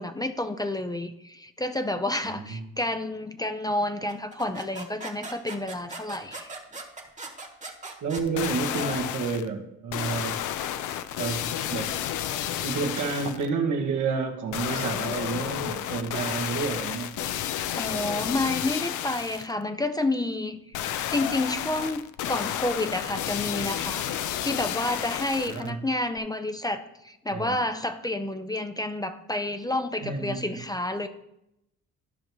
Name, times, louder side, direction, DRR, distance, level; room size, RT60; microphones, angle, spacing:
voice 1, 0.0-6.5 17.8-31.1, left 1 dB, 15° left, 8 dB, 0.5 m, -30 dB
voice 2, 2.3-2.7 8.0-10.4 11.2-11.9 12.6-17.2 25.4-25.8 27.3-27.6 30.0-30.6, right 5 dB, 75° right, 2 dB, 1.3 m, -30 dB
sound 1, 4.1-8.9, right 3 dB, 25° right, 1.3 m, -40 dB
sound 2, 8.2-9.5 9.9-13.5 14.5-19.5 20.7-25.7 26.2-26.3, left 11 dB, 80° left, 0.5 m, -31 dB
12.5 x 5.3 x 3.1 m, 0.84 s
cardioid pair, 90°, 30 cm